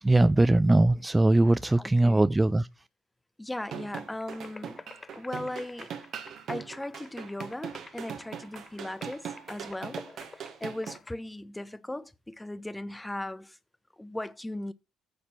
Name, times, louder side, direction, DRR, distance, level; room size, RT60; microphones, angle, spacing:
voice 1, 0.0-2.7, right 2 dB, 15° right, 0.4 m, -21 dB
voice 2, 1.8-2.2 3.4-4.8 5.1-5.9 6.5-13.6 14.0-14.7, left 1 dB, 10° left, 0.9 m, -38 dB
sound 1, 3.6-11.0, right 8 dB, 60° right, 1.5 m, -40 dB
sound 2, 4.0-11.1, left 4 dB, 30° left, 0.6 m, -49 dB
9.7 x 4.4 x 7.4 m
hypercardioid pair, 50°, 0 cm